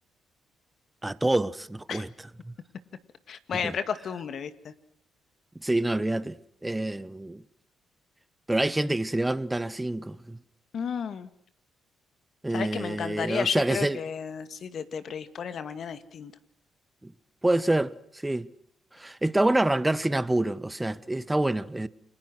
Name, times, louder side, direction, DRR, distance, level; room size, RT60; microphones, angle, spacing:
voice 1, 1.0-2.1 2.4-2.5 3.5-3.7 5.5-7.4 8.5-10.4 12.4-14.0 17.0-17.1 17.4-18.5 18.9-21.9, right 1 dB, 10° right, 1.2 m, -27 dB
voice 2, 3.3-4.7 10.7-11.3 12.5-16.3, left 7 dB, 55° left, 2.1 m, -33 dB
29.0 x 21.5 x 6.3 m
cardioid pair, 90°, 0 cm